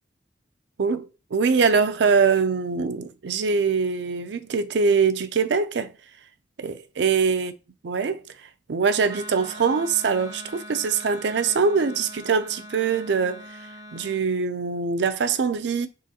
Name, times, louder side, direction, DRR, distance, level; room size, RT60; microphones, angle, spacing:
voice 1, 0.8-5.9 6.6-7.5 7.8-8.2 8.7-13.5 13.9-15.9, right 5 dB, 75° right, 0.4 m, -23 dB
Wind instrument woodwind instrument, 9.1-14.2, left 1 dB, 20° right, 0.5 m, -42 dB
3.9 x 3.8 x 2.8 m
head